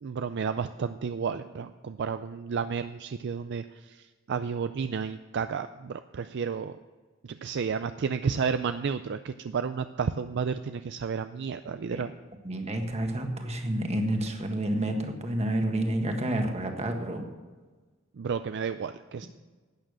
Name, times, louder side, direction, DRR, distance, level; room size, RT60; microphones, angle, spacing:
voice 1, 0.0-6.8 7.2-12.1 18.2-19.3, right 6 dB, 55° right, 10 dB, 0.4 m, -32 dB
voice 2, 12.4-17.2, right 1 dB, 30° right, 4 dB, 1.5 m, -29 dB
12.0 x 8.9 x 6.3 m, 1.3 s
head